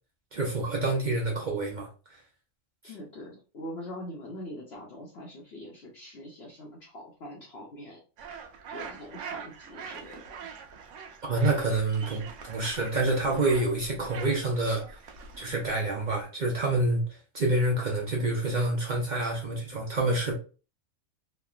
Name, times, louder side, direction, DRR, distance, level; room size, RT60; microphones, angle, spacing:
voice 1, 0.3-1.9 11.2-14.8 15.4-20.3, right 2 dB, 50° right, 0.5 m, -27 dB
voice 2, 2.9-8.0 8.7-10.5, left 1 dB, 60° left, 0.8 m, -43 dB
sound 1, 8.2-16.2, right 6 dB, 70° right, 0.9 m, -44 dB
3.1 x 2.2 x 2.3 m
omnidirectional pair, 1.4 m